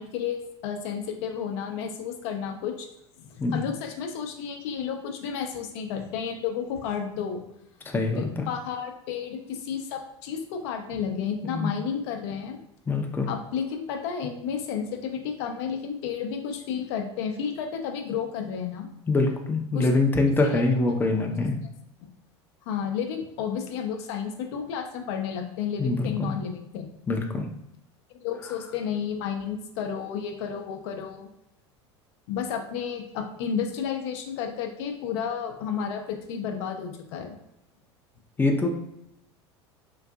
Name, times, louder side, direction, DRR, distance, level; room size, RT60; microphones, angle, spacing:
voice 1, 0.0-2.9 3.2-7.4 8.2-12.6 13.3-18.9 19.7-19.9 20.4-20.6 22.7-26.9 28.2-31.3 32.3-37.3, left 7 dB, 65° left, 4 dB, 0.5 m, -32 dB
voice 2, 7.9-8.5 11.4-11.7 12.9-13.3 19.1-21.6 25.8-26.3 27.1-27.5 38.4-38.7, left 3 dB, 15° left, 2 dB, 0.5 m, -24 dB
3.9 x 2.4 x 2.3 m, 0.82 s
hypercardioid pair, 80°, 15 cm